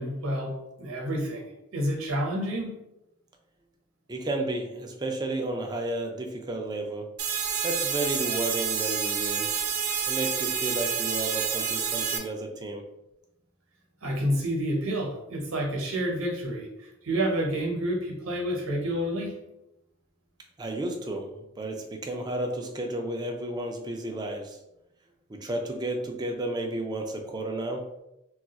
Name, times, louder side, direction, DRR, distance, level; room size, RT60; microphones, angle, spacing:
voice 1, 0.0-2.7 14.0-19.4, equal, 60° right, 0 dB, 0.8 m, -29 dB
voice 2, 4.1-7.1 7.6-9.5 10.1-12.8 20.6-21.3 21.6-24.6 25.3-27.8, right 2 dB, 20° right, 3 dB, 0.3 m, -32 dB
sound 1, 7.2-12.2, right 7 dB, 85° right, 0.5 m, -28 dB
2.3 x 2.3 x 3.9 m, 0.90 s
head